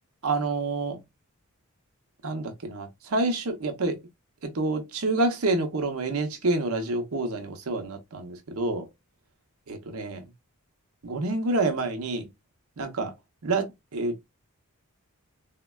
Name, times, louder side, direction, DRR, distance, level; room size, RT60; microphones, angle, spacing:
voice 1, 0.2-1.0 2.2-4.0 4.4-8.9 9.9-10.2 11.0-12.3 12.8-13.1 13.4-14.3, right 2 dB, 75° right, 0.8 m, -28 dB
3.7 x 2.1 x 2.2 m
head